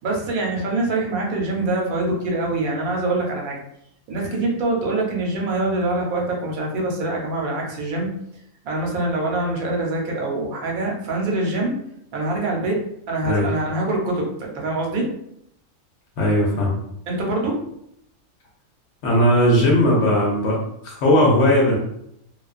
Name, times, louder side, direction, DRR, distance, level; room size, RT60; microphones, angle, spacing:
voice 1, 0.0-3.6 4.1-8.1 8.6-11.7 12.1-12.8 13.1-15.1 17.1-17.6, right 2 dB, 80° right, -1 dB, 1.1 m, -24 dB
voice 2, 13.2-13.5 16.2-16.7 19.0-21.8, left 1 dB, 65° left, -2 dB, 0.8 m, -18 dB
2.4 x 2.2 x 2.3 m, 0.75 s
omnidirectional pair, 1.5 m